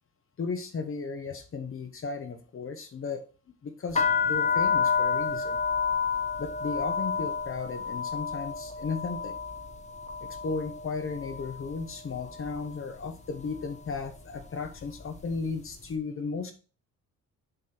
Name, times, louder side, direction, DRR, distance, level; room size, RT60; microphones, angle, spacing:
voice 1, 0.4-3.2 3.6-5.6 6.4-9.4 10.2-16.5, left 4 dB, 45° left, 8 dB, 1.1 m, -35 dB
sound 1, 3.9-11.8 12.1-12.7 13.4-13.7 13.9-15.4, left 5 dB, 25° left, 1.2 m, -30 dB
7.2 x 3.7 x 6.0 m, 0.35 s
cardioid pair, 90°, 30 cm